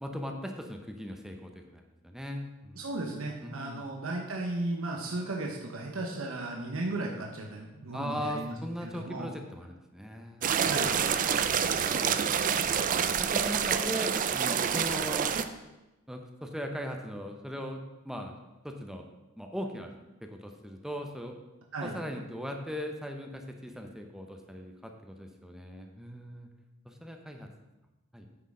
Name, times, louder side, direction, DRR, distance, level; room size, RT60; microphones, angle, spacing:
voice 1, 0.0-2.9 3.4-3.8 7.9-10.7 13.2-15.4 16.1-18.3 18.6-19.1 19.4-19.9 20.2-21.3 21.8-26.5 26.8-27.5 28.1-28.3, equal, ahead, 3 dB, 0.6 m, -39 dB
voice 2, 2.8-8.6 8.8-9.3 10.6-10.9 21.7-22.0, right 2 dB, 90° right, 0 dB, 1.0 m, -35 dB
sound 1, 10.4-15.4, right 7 dB, 40° right, 0.4 m, -27 dB
9.2 x 6.3 x 3.7 m, 1.0 s
head